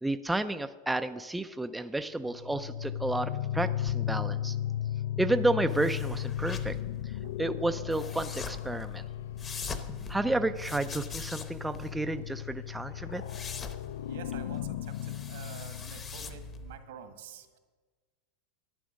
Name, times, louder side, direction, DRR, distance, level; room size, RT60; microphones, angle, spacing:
voice 1, 0.0-4.6 5.2-6.8 7.0-9.1 10.1-13.2, right 2 dB, 5° right, 9 dB, 0.3 m, -31 dB
sound 1, 2.3-16.8, left 12 dB, 80° left, 0.4 m, -36 dB
sound 2, 5.7-16.8, left 4 dB, 20° left, 0.8 m, -44 dB
voice 2, 14.1-15.0 15.3-17.6, right 8 dB, 80° right, 7 dB, 1.6 m, -47 dB
11.5 x 9.5 x 6.3 m, 1.4 s
supercardioid pair, 160°, 0 cm